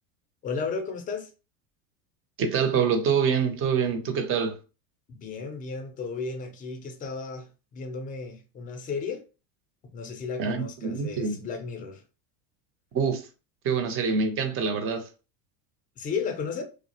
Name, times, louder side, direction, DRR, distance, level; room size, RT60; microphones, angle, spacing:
voice 1, 0.4-1.3 5.1-9.2 9.9-12.0 16.0-16.6, left 5 dB, 20° left, 0.4 m, -34 dB
voice 2, 2.4-4.6 10.4-11.4 12.9-13.3 13.6-15.1, right 6 dB, 30° right, 0.5 m, -26 dB
2.4 x 2.0 x 2.7 m
hypercardioid pair, 100°, 47 cm